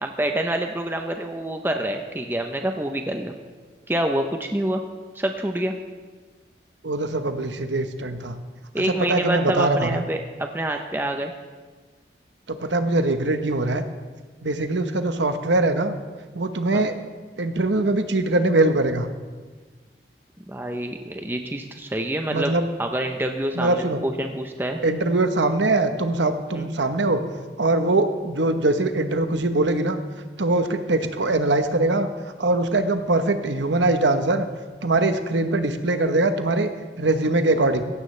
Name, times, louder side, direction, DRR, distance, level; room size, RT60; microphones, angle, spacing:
voice 1, 0.0-3.3 3.9-4.8 5.1-5.7 8.7-11.3 16.7-16.8 20.5-22.5 22.8-24.8 26.5-26.7, right 1 dB, 10° right, 4 dB, 0.6 m, -27 dB
voice 2, 6.8-8.4 8.9-10.0 12.5-13.8 14.4-15.9 16.3-17.0 17.4-19.1 22.3-22.7 23.5-24.0 24.8-27.2 27.6-30.0 30.4-32.1 32.4-34.5 34.8-37.8, right 2 dB, 85° right, 8 dB, 1.0 m, -22 dB
16.0 x 15.5 x 3.3 m, 1.4 s
head